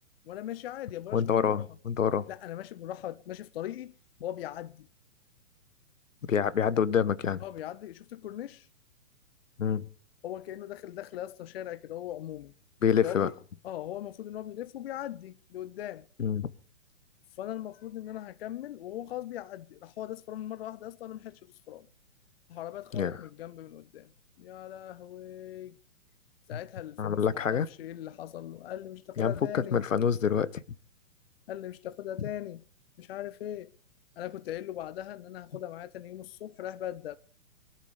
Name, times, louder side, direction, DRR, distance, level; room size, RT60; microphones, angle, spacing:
voice 1, 0.2-1.6 2.3-3.9 4.2-4.9 7.4-8.7 10.2-12.5 13.0-13.3 13.6-16.1 17.4-21.9 22.5-24.1 24.4-25.8 26.5-29.8 31.5-32.6 33.0-33.7 34.2-37.2, left 12 dB, 45° left, 0.8 m, -39 dB
voice 2, 1.1-2.2 6.3-7.4 9.6-9.8 12.8-13.3 16.2-16.5 22.9-23.2 26.5-26.6 27.0-27.7 29.2-30.6, left 7 dB, 70° left, 1.3 m, -27 dB
22.5 x 12.5 x 5.1 m
figure-of-eight pair, 120°, 40 cm